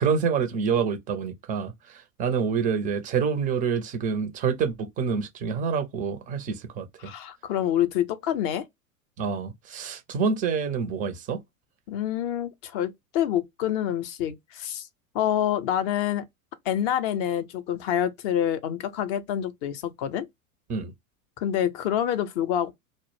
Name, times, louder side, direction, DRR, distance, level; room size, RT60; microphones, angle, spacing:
voice 1, 0.0-7.1 9.2-11.4 20.7-20.9, right 6 dB, 20° right, 0.4 m, -27 dB
voice 2, 7.0-8.7 11.9-14.9 15.1-16.2 16.7-20.3 21.4-22.7, left 10 dB, 45° left, 0.5 m, -27 dB
2.1 x 2.0 x 3.0 m
hypercardioid pair, 105°, 44 cm